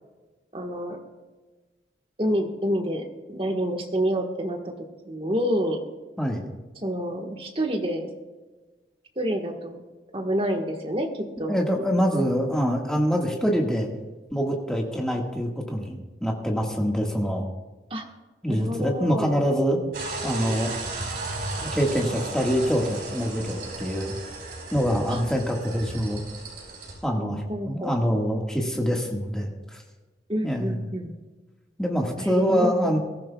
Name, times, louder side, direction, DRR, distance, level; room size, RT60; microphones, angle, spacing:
voice 1, 0.5-1.0 2.2-5.8 6.8-8.1 9.1-9.8 10.1-11.5 17.9-18.1 18.5-19.4 25.1-25.2 27.2-28.0 30.3-31.1 32.2-33.0, equal, 30° right, 3 dB, 1.5 m, -28 dB
voice 2, 11.5-13.9 14.3-17.5 18.4-19.9 20.2-20.7 21.6-24.1 24.7-26.2 27.0-29.8 30.4-30.8 31.8-33.0, equal, 5° left, 0 dB, 1.7 m, -25 dB
sound 1, 19.9-27.0, right 2 dB, 60° right, 4.5 m, -35 dB
21.5 x 14.0 x 2.4 m, 1.3 s
head